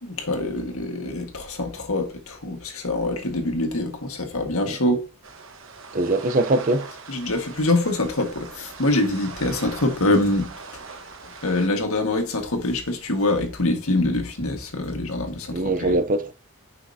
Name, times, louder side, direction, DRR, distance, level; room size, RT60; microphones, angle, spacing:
voice 1, 0.0-5.0 7.1-10.8 11.4-15.9, left 2 dB, 75° left, 1.7 m, -25 dB
sound 1, 5.2-11.7, right 4 dB, 60° right, 1.2 m, -41 dB
voice 2, 5.9-6.9 15.5-16.3, right 2 dB, 40° right, 0.6 m, -22 dB
9.6 x 5.8 x 2.7 m
head